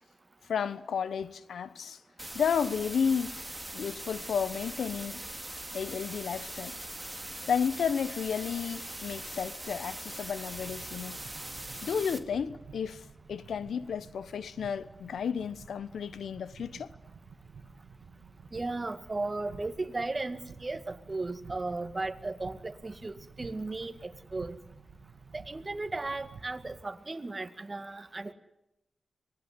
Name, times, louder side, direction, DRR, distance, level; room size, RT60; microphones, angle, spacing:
voice 1, 0.5-2.0 2.3-3.4 3.7-5.2 5.7-6.7 7.5-11.2 11.8-16.9, left 7 dB, 90° left, 1.0 m, -32 dB
sound 1, 2.2-12.2, right 1 dB, 15° right, 3.1 m, -41 dB
sound 2, 10.5-26.8, right 5 dB, 85° right, 2.4 m, -51 dB
voice 2, 18.5-24.6 25.3-28.3, right 2 dB, 35° right, 2.1 m, -36 dB
25.0 x 20.5 x 9.6 m
cardioid pair, 55°, 0 cm